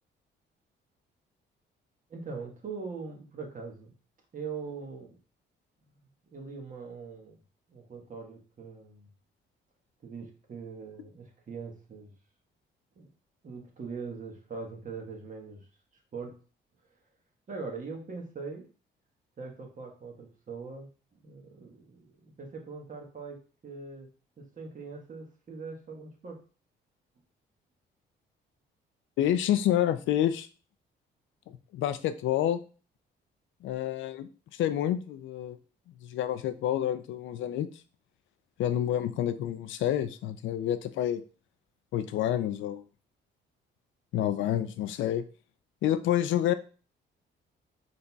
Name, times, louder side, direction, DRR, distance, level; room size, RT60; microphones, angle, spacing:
voice 1, 2.1-3.9 4.3-5.2 6.3-7.4 7.7-9.1 10.0-12.1 13.0-13.1 13.4-15.7 16.1-16.4 17.5-18.7 19.4-24.1 24.4-26.4, right 4 dB, 40° right, 2 dB, 1.2 m, -42 dB
voice 2, 29.2-30.5 31.7-32.6 33.6-35.6 36.0-37.7 38.6-41.2 41.9-42.8 44.1-45.2 45.8-46.5, left 11 dB, 75° left, 11 dB, 0.4 m, -28 dB
4.1 x 3.9 x 2.3 m, 0.37 s
cardioid pair, 90°, 20 cm